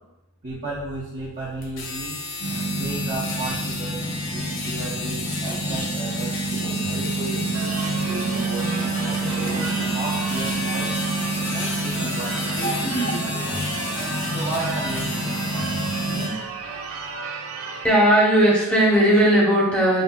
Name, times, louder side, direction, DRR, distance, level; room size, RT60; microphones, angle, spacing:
voice 1, 0.4-2.2 2.7-4.1 4.3-7.2 8.1-9.7 9.9-11.0 11.5-13.7 14.3-15.9, right 2 dB, 40° right, -8 dB, 0.7 m, -34 dB
sound 1, 1.6-16.3, left 3 dB, 60° left, 0.7 m, -32 dB
sound 2, 2.4-16.3, right 2 dB, 80° left, 1.2 m, -28 dB
Church bell / Car / Alarm, 7.5-17.9, right 5 dB, 75° right, 0.4 m, -34 dB
voice 2, 17.8-20.0, right 1 dB, 5° left, -6 dB, 0.9 m, -17 dB
5.3 x 2.6 x 2.3 m, 0.94 s
head